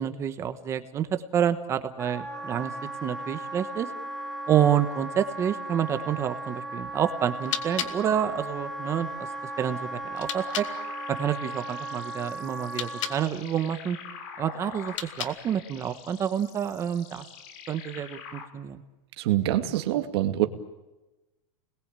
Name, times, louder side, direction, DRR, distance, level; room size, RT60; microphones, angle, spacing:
voice 1, 0.0-2.7 3.0-3.9 4.5-9.1 9.6-10.7 11.2-14.0 14.4-17.3 17.7-18.8, right 9 dB, 15° right, 10 dB, 1.1 m, -28 dB
Wind instrument woodwind instrument, 2.0-13.3, right 2 dB, ahead, 1.5 m, -36 dB
sound 1, 7.2-10.7 12.6-13.2 14.8-15.6, left 10 dB, 65° left, 2.5 m, -37 dB
sound 2, 10.4-18.5, left 7 dB, 40° left, 3.1 m, -45 dB
voice 2, 19.2-20.5, right 13 dB, 50° right, 7 dB, 2.4 m, -25 dB
29.5 x 21.5 x 9.0 m, 1.1 s
supercardioid pair, 180°, 17 cm